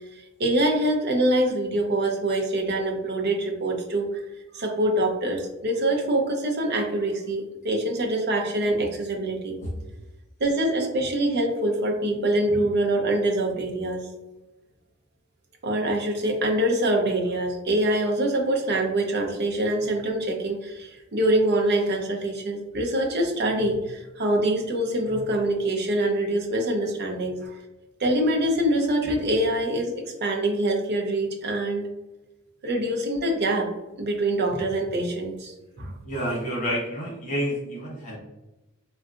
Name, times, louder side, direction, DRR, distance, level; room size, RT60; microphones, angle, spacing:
voice 1, 0.4-4.2 4.5-9.6 10.4-14.1 15.6-27.6 28.0-31.9 32.6-33.7 34.0-36.0, right 1 dB, 50° right, 1 dB, 0.6 m, -25 dB
voice 2, 36.0-38.2, equal, 35° left, -5 dB, 0.9 m, -29 dB
3.8 x 2.3 x 2.4 m, 1.1 s
head